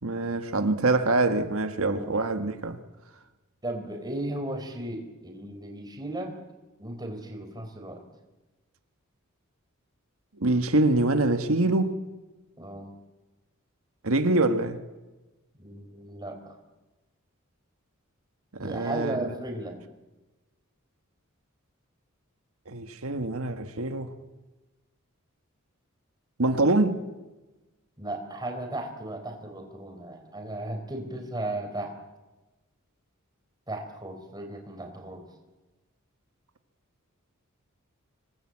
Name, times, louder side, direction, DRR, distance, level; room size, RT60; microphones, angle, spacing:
voice 1, 0.0-2.8 10.4-11.9 14.0-14.8 18.6-19.3 22.7-24.1 26.4-27.0, right 2 dB, 80° right, 1.6 m, -25 dB
voice 2, 1.8-2.1 3.6-6.3 6.8-8.0 12.6-12.9 15.6-16.6 18.6-19.8 28.0-32.0 33.7-35.3, right 1 dB, 20° right, 4.2 m, -35 dB
26.0 x 19.0 x 8.8 m
head